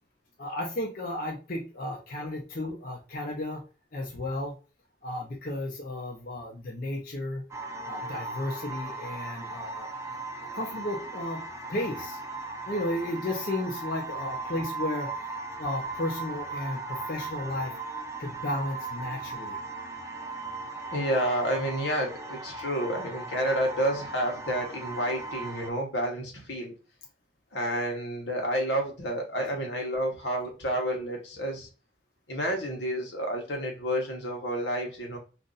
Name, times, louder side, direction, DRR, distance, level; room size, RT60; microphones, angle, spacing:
voice 1, 0.4-3.6 3.9-4.5 5.0-7.4 7.8-9.9 10.5-11.4 11.7-12.2 12.7-15.1 15.6-17.7 18.2-19.6, left 1 dB, 50° left, -1 dB, 0.6 m, -33 dB
sound 1, 7.5-25.7, right 3 dB, 15° right, 0.4 m, -38 dB
voice 2, 20.9-26.7 27.5-31.7 32.3-35.2, equal, 90° left, 0 dB, 1.1 m, -30 dB
2.6 x 2.5 x 3.8 m, 0.32 s
head